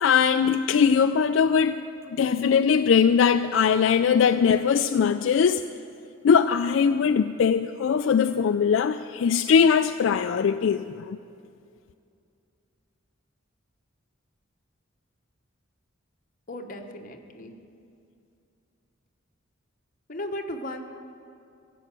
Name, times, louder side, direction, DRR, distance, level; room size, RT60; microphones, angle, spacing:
voice 1, 0.0-5.6 6.2-11.2, left 6 dB, 70° left, 0.3 m, -21 dB
voice 2, 16.5-17.5 20.1-20.8, left 1 dB, 40° left, 1.0 m, -35 dB
15.0 x 7.8 x 7.5 m
head